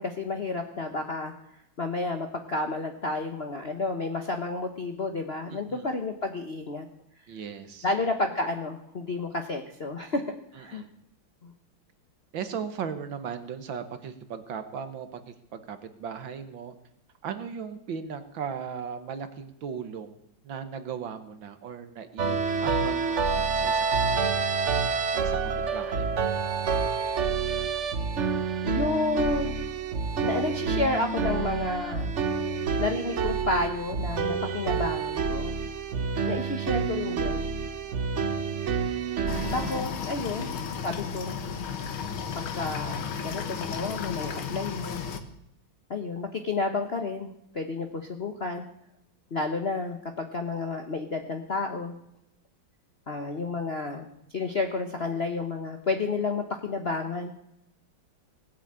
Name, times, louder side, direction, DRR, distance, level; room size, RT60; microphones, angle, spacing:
voice 1, 0.0-6.9 7.8-10.2 10.5-10.8 11.4-11.5 28.6-29.6 30.2-32.1 32.8-35.6 36.3-37.5 39.5-40.5 40.8-41.4 42.3-45.0 45.9-48.6 49.3-51.9 53.1-57.3, left 3 dB, 35° left, 5 dB, 1.1 m, -31 dB
voice 2, 5.5-5.9 7.3-8.1 10.6-10.9 12.3-16.7 17.2-20.2 20.4-24.4 25.1-26.2 40.3-40.5, right 7 dB, 70° right, 10 dB, 1.9 m, -38 dB
sound 1, 22.2-39.8, right 5 dB, 45° right, 1.0 m, -28 dB
sound 2, 39.3-45.2, left 6 dB, 85° left, 2.2 m, -34 dB
19.0 x 8.2 x 8.8 m, 0.79 s
omnidirectional pair, 2.2 m